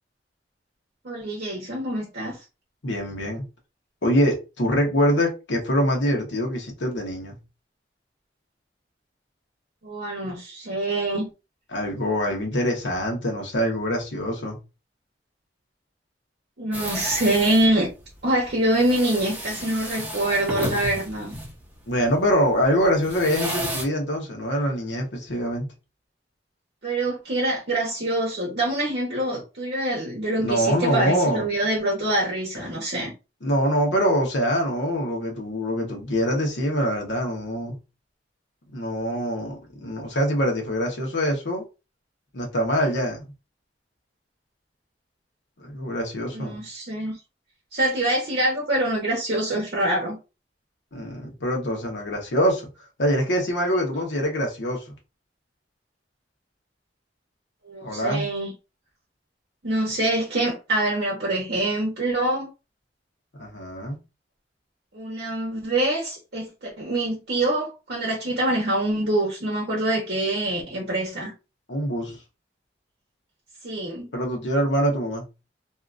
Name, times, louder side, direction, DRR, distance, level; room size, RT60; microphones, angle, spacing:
voice 1, 1.0-2.4 9.8-11.3 16.6-17.9 18.2-21.4 26.8-33.1 46.3-47.2 47.7-50.2 57.6-58.5 59.6-62.5 64.9-71.3 73.6-74.1, right 1 dB, 60° right, 0.8 m, -25 dB
voice 2, 2.8-3.5 4.0-7.4 11.7-14.6 21.9-25.7 30.4-31.4 33.4-37.8 38.7-39.6 39.8-41.6 42.3-43.2 45.6-46.6 50.9-52.7 53.0-54.9 57.8-58.3 63.4-64.0 71.7-72.2 74.1-75.2, equal, 85° left, 1.0 m, -24 dB
sound 1, 16.7-23.8, right 1 dB, 10° right, 0.8 m, -33 dB
2.7 x 2.4 x 2.4 m
head